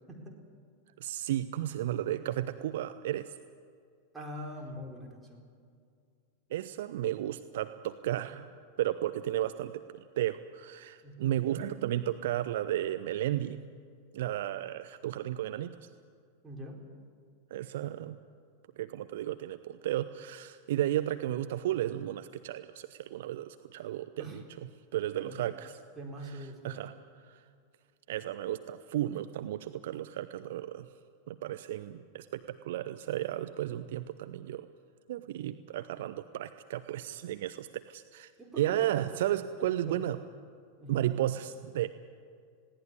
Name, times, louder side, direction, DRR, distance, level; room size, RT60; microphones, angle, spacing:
voice 1, 0.1-0.4 4.1-5.5 11.0-11.3 16.4-16.9 24.2-24.4 25.2-25.4 26.0-26.8 38.4-38.8 39.1-40.1 40.8-41.1, equal, 15° right, 0 dB, 4.1 m, -44 dB
voice 2, 1.0-3.3 6.5-13.6 14.1-15.7 17.5-18.2 18.8-24.4 24.9-25.7 26.6-26.9 27.3-27.4 28.1-30.9 31.3-34.7 35.1-38.3 38.6-40.2 40.9-41.9, right 13 dB, 55° right, 11 dB, 0.7 m, -33 dB
20.0 x 17.0 x 9.7 m, 2.2 s
figure-of-eight pair, 90°, 0 cm